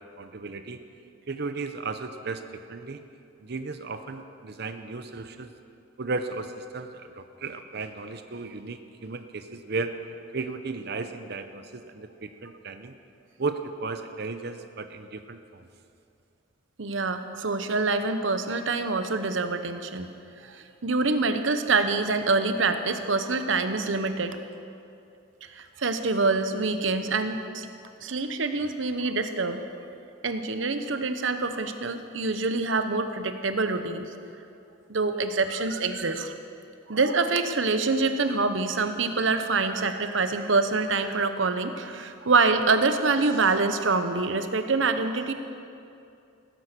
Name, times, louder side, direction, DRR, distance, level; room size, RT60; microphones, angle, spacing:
voice 1, 0.2-0.8 1.3-3.0 3.4-5.5 6.0-9.9 10.3-12.9 13.4-15.7, right 3 dB, 55° right, 8 dB, 0.7 m, -35 dB
voice 2, 16.8-20.1 20.4-24.4 25.5-27.7 28.0-29.6 30.2-34.1 34.9-36.4 36.9-45.3, right 3 dB, 80° right, 9 dB, 1.0 m, -26 dB
17.0 x 10.0 x 6.8 m, 2.6 s
head